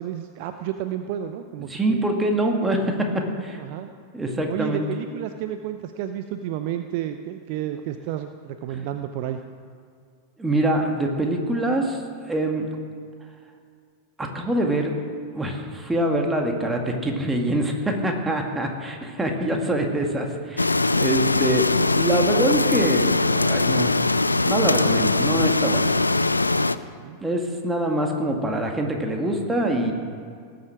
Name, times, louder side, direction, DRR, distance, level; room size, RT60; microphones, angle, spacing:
voice 1, 0.0-2.1 3.6-3.9 4.5-9.4 27.0-27.2, right 11 dB, 45° right, 8 dB, 0.6 m, -31 dB
voice 2, 1.7-3.6 4.1-4.9 8.7-8.9 10.4-12.0 12.3-12.7 14.2-14.9 15.3-23.9 24.4-25.9 27.2-29.9, right 1 dB, 10° right, 2 dB, 2.0 m, -24 dB
sound 1, 20.6-26.7, left 2 dB, 80° left, 0.4 m, -21 dB
18.5 x 7.7 x 6.2 m, 2.2 s
figure-of-eight pair, 90°, 0 cm